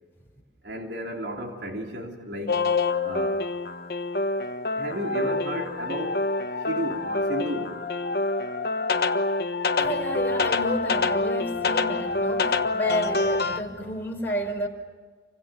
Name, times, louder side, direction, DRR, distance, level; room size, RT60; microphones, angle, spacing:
voice 1, 0.6-2.7 3.0-3.5 4.8-6.2 6.7-7.8, equal, 80° right, 3.5 m, -33 dB
sound 1, 2.5-13.6, left 3 dB, 60° left, 1.4 m, -26 dB
voice 2, 9.8-14.7, equal, 10° left, 5.2 m, -30 dB
29.5 x 25.5 x 7.6 m
head